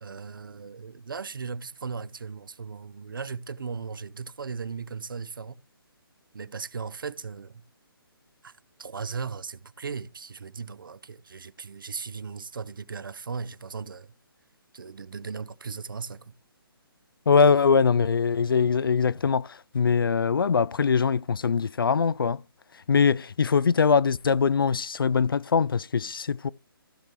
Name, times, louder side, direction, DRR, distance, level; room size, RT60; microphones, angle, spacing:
voice 1, 0.0-5.6 6.3-7.6 8.4-8.5 8.8-14.1 14.7-16.3, right 5 dB, 60° right, 0.7 m, -37 dB
voice 2, 17.3-22.4 22.9-26.5, left 5 dB, 65° left, 0.4 m, -22 dB
15.5 x 6.5 x 3.0 m
figure-of-eight pair, 140°, 13 cm